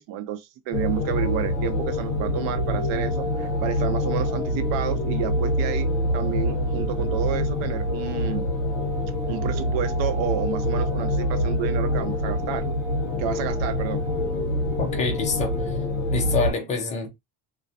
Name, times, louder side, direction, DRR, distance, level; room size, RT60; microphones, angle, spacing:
voice 1, 0.0-5.9 6.1-8.5 9.3-12.7 13.2-14.0, right 11 dB, 70° right, 0.6 m, -30 dB
sound 1, 0.7-16.5, left 1 dB, 40° left, 0.7 m, -25 dB
voice 2, 14.8-15.7 16.1-17.1, left 4 dB, 15° left, 0.4 m, -26 dB
2.4 x 2.1 x 2.6 m
cardioid pair, 170°, 45 cm